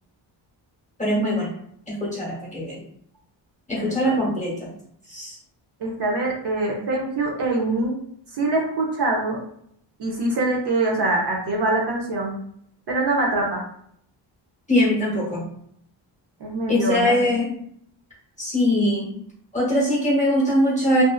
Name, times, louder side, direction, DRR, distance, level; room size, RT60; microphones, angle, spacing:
voice 1, 1.0-1.5 1.9-2.8 3.7-4.7 5.1-5.3 14.7-15.5 16.7-17.6 18.4-19.1 19.5-21.0, left 1 dB, 15° left, -6 dB, 1.0 m, -22 dB
voice 2, 3.7-4.2 5.8-8.0 8.3-9.4 10.0-12.3 12.9-13.6 16.4-17.3, right 2 dB, 60° right, -1 dB, 0.8 m, -24 dB
2.6 x 2.5 x 2.4 m, 0.69 s
cardioid pair, 110°, 45 cm